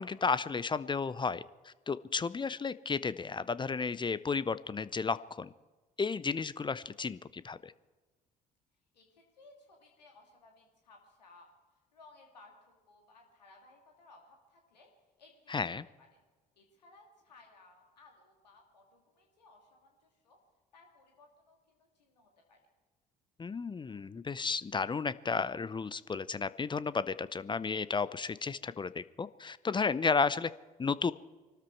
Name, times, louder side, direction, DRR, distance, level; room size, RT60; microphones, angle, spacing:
voice 1, 0.0-5.5 6.0-7.7 15.5-15.9 23.4-30.5 30.8-31.1, left 5 dB, 20° left, 17 dB, 0.6 m, -33 dB
voice 2, 8.9-11.5 11.9-14.9 15.2-15.6 16.0-16.2 16.6-20.4 20.7-22.6, left 3 dB, 85° left, 1 dB, 2.6 m, -60 dB
24.0 x 13.0 x 4.7 m, 1.3 s
figure-of-eight pair, 50°, 21 cm